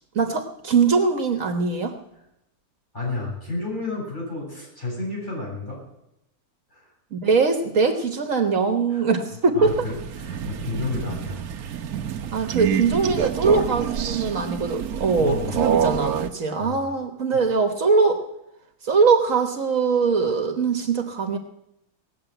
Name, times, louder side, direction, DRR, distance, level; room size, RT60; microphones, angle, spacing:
voice 1, 0.1-1.9 7.1-9.8 12.3-18.2 18.8-21.4, right 4 dB, 60° right, 7 dB, 1.5 m, -22 dB
voice 2, 2.9-5.8 6.7-6.8 8.9-9.0 9.5-11.4 11.7-11.8 15.2-15.5 16.6-16.8, left 2 dB, 30° left, -4 dB, 7.7 m, -31 dB
Crow, 9.6-16.3, right 8 dB, 80° right, 1.3 m, -27 dB
19.0 x 7.5 x 9.0 m, 0.85 s
omnidirectional pair, 1.6 m